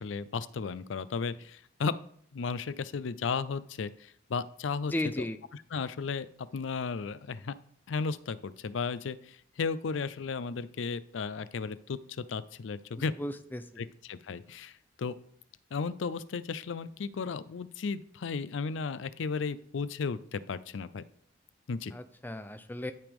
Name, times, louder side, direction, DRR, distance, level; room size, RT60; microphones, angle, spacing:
voice 1, 0.0-1.9 2.3-4.9 5.7-7.5 7.9-13.1 13.8-14.7 15.0-15.1 15.7-21.0 21.7-21.9, left 5 dB, 75° left, 15 dB, 0.5 m, -34 dB
voice 2, 4.9-5.4 13.0-13.8 21.9-22.9, left 1 dB, 10° left, 9 dB, 0.5 m, -36 dB
12.0 x 5.0 x 3.5 m, 0.62 s
head